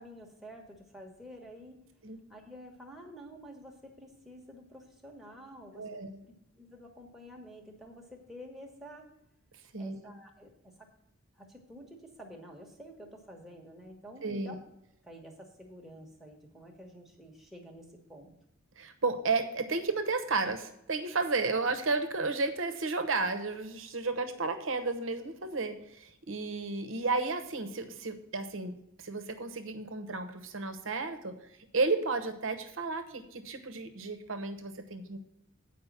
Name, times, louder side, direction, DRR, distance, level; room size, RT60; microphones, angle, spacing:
voice 1, 0.0-1.8 2.3-5.8 6.2-9.1 9.8-10.9 11.4-14.6 15.0-18.3, equal, ahead, 0 dB, 1.1 m, -49 dB
voice 2, 5.7-6.2 9.7-10.1 14.2-14.5 18.8-31.4 31.7-35.2, right 3 dB, 65° right, 8 dB, 1.0 m, -33 dB
8.3 x 5.1 x 7.2 m, 0.78 s
head